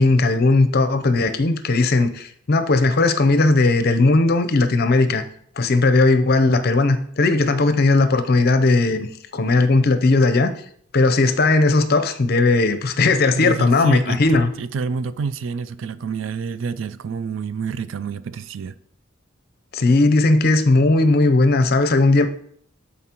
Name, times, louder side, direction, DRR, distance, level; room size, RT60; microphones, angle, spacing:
voice 1, 0.0-5.2 5.6-9.1 9.3-10.5 10.9-14.5 19.7-22.3, left 3 dB, 50° left, 0.6 m, -17 dB
voice 2, 13.3-18.8, right 5 dB, 70° right, 0.4 m, -28 dB
11.0 x 4.2 x 2.9 m
head